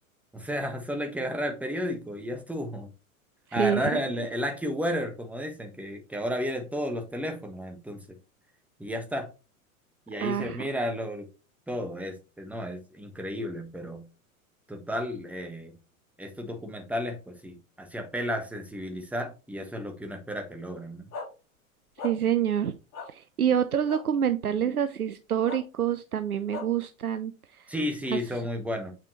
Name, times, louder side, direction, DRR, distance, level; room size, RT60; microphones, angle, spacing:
voice 1, 0.3-2.9 3.5-8.0 8.8-9.3 10.1-11.3 11.7-14.0 14.7-15.7 16.2-21.1 27.7-28.9, equal, 5° right, 1.3 m, -32 dB
voice 2, 3.6-4.0 10.2-10.6 22.0-22.7 23.1-27.7 28.1-28.2, right 9 dB, 85° right, 0.6 m, -27 dB
sound 1, 21.1-21.3 22.0-22.1 22.9-23.1 23.9-24.0 25.5-25.6 26.5-26.7, left 4 dB, 40° left, 3.7 m, -36 dB
7.1 x 5.8 x 3.0 m
figure-of-eight pair, 85°, 43 cm